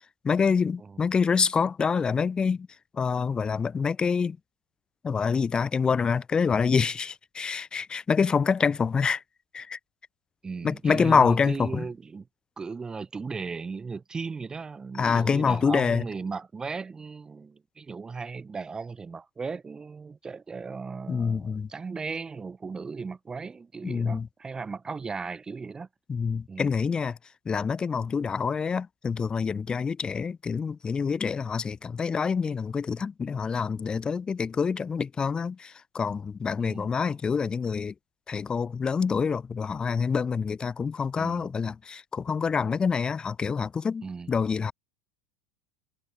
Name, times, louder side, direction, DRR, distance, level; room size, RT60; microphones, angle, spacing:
voice 1, 0.2-2.7 2.9-4.4 5.0-9.2 9.5-9.8 10.6-11.9 15.0-16.0 21.1-21.7 23.8-24.3 26.1-27.2 27.5-37.9 38.3-44.7, left 5 dB, 20° left, 0.7 m, -26 dB
voice 2, 10.4-12.3 12.6-25.9 26.5-26.7 36.6-36.9 41.2-41.5 44.0-44.3, right 4 dB, 20° right, 1.3 m, -36 dB
hypercardioid pair, 95°, 4 cm